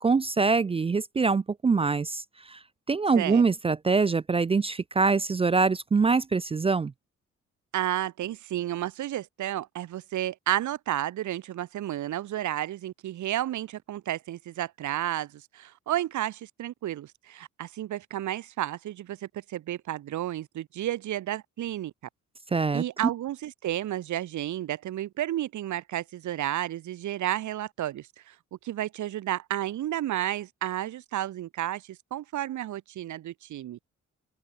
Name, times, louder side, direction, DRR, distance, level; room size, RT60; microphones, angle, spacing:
voice 1, 0.0-2.2 2.5-2.6 2.9-6.9 22.5-22.8, right 4 dB, 20° right, 0.4 m, -24 dB
voice 2, 7.7-21.9 22.7-28.3 28.6-33.9, right 13 dB, 75° right, 1.8 m, -32 dB
open air
cardioid pair, 90°, 30 cm